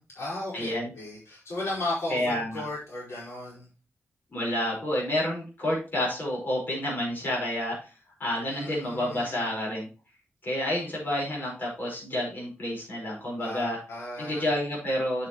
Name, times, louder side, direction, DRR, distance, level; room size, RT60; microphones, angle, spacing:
voice 1, 0.0-3.7 8.5-9.5 13.4-14.5, left 2 dB, 85° left, -6 dB, 4.7 m, -35 dB
voice 2, 0.5-0.9 2.1-2.6 4.3-7.7 8.2-9.9 10.4-13.8 14.2-15.3, left 1 dB, 45° left, -3 dB, 5.1 m, -29 dB
8.2 x 7.5 x 3.2 m, 0.33 s
wide cardioid pair, 150°, 4 cm